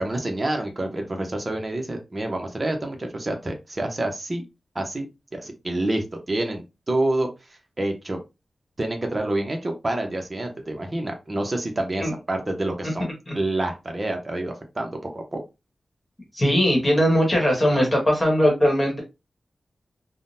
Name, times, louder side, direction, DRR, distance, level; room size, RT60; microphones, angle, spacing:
voice 1, 0.0-4.4 4.7-5.1 5.3-7.3 7.8-8.2 8.8-13.1 13.3-15.4, right 1 dB, 25° right, 3 dB, 0.7 m, -27 dB
voice 2, 16.3-19.0, equal, 25° left, 0 dB, 1.3 m, -20 dB
3.6 x 2.1 x 2.6 m, 0.26 s
wide cardioid pair, 135°, 0 cm